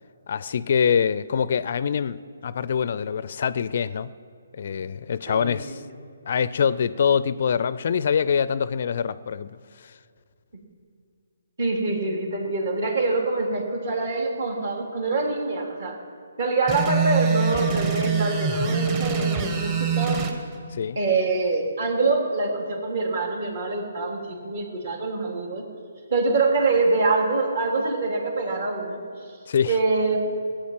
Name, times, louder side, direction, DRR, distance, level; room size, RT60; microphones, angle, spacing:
voice 1, 0.3-4.1 4.5-5.8 6.3-10.0 20.7-21.0 29.5-29.8, left 7 dB, 50° left, 17 dB, 0.4 m, -24 dB
voice 2, 5.3-5.7 11.6-16.0 16.4-20.2 20.9-25.6 26.1-29.0 29.7-30.2, right 3 dB, 50° right, 1 dB, 3.1 m, -25 dB
sound 1, 16.7-20.3, right 6 dB, 25° right, 1.6 m, -24 dB
17.5 x 9.0 x 7.4 m, 2.2 s
figure-of-eight pair, 140°, 0 cm